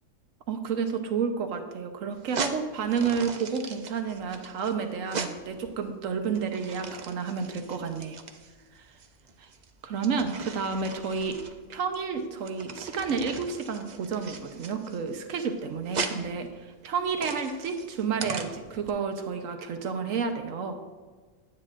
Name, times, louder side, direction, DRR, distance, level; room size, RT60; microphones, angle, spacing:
voice 1, 0.5-8.2 9.4-9.5 9.8-11.4 11.7-20.8, right 5 dB, 80° right, 5 dB, 1.2 m, -30 dB
sound 1, 2.1-18.9, right 5 dB, 50° right, 0.5 m, -39 dB
9.7 x 9.5 x 2.5 m, 1.4 s
omnidirectional pair, 1.4 m